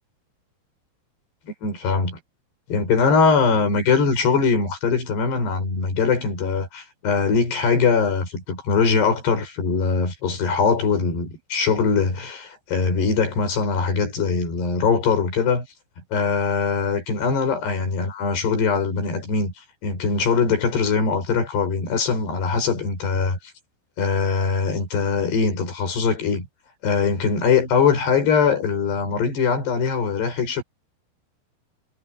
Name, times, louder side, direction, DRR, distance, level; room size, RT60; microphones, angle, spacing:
voice 1, 1.6-2.2 2.7-15.7 16.1-19.5 19.8-23.4 24.0-26.5 26.8-30.6, left 5 dB, 55° left, 8.8 m, -21 dB
omnidirectional pair, 5.6 m